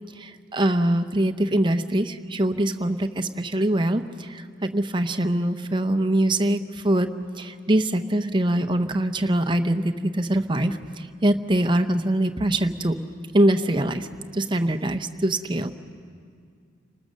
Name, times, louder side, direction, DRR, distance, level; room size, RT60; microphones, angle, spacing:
voice 1, 0.2-7.1 7.4-13.0 13.3-14.1 14.3-15.7, right 1 dB, 25° right, 7 dB, 0.8 m, -23 dB
29.5 x 20.0 x 6.5 m, 2.2 s
head